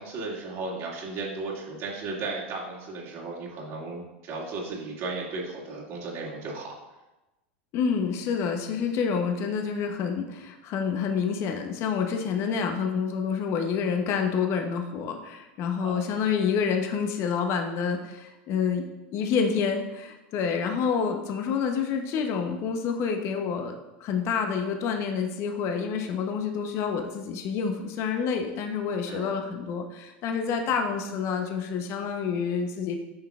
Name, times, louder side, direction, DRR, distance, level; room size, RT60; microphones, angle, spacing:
voice 1, 0.0-6.8 15.8-16.3 29.1-29.3, right 3 dB, 50° right, -3 dB, 2.1 m, -35 dB
voice 2, 7.7-18.8 19.1-23.7 24.0-32.9, left 6 dB, 45° left, 4 dB, 0.8 m, -28 dB
8.7 x 5.7 x 2.4 m, 1.0 s
hypercardioid pair, 105°, 6 cm